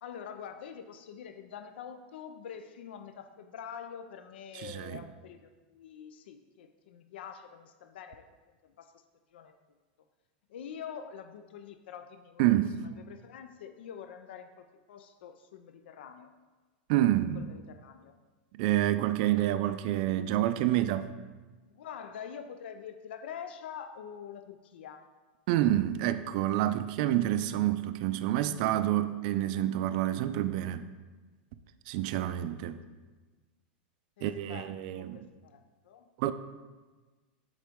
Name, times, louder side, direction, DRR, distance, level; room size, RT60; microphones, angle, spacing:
voice 1, 0.0-8.3 8.6-9.0 9.3-9.5 10.5-16.3 17.2-18.2 21.7-25.1 34.2-36.1, left 8 dB, 80° left, 0.4 m, -46 dB
voice 2, 4.6-5.0 12.4-12.7 16.9-17.5 18.5-21.1 25.5-30.8 31.9-32.8 34.2-35.2 36.2-36.3, right 13 dB, 50° right, 0.3 m, -28 dB
7.3 x 4.0 x 3.5 m
supercardioid pair, 150°, 6 cm